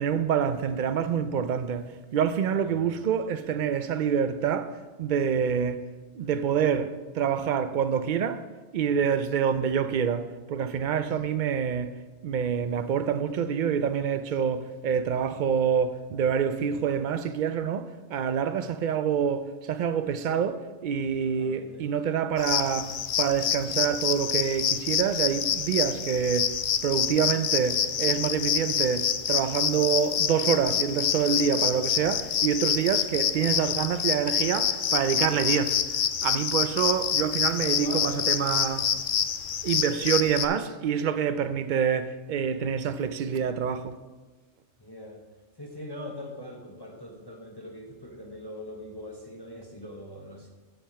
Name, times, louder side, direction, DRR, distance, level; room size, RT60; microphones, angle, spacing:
voice 1, 0.0-1.9 2.1-5.8 6.2-8.4 8.7-11.9 12.2-26.5 26.8-38.9 39.6-44.0, right 7 dB, 70° right, 0.4 m, -27 dB
voice 2, 6.2-6.6 21.2-21.9 37.6-38.7 44.8-45.2 45.6-50.5, left 1 dB, 20° left, 0.7 m, -42 dB
sound 1, 22.4-40.5, left 8 dB, 60° left, 0.5 m, -27 dB
7.3 x 6.7 x 5.7 m
omnidirectional pair, 1.3 m